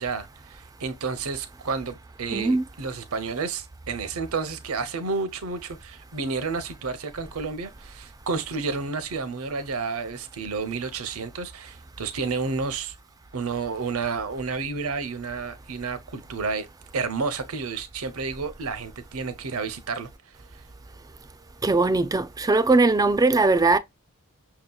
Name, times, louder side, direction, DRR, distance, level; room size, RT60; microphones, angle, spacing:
voice 1, 0.0-12.9 13.3-16.7 16.9-20.1, right 4 dB, 70° right, 0.7 m, -31 dB
voice 2, 2.3-2.6 21.6-23.8, right 3 dB, 15° right, 0.4 m, -20 dB
5.8 x 2.8 x 2.2 m
head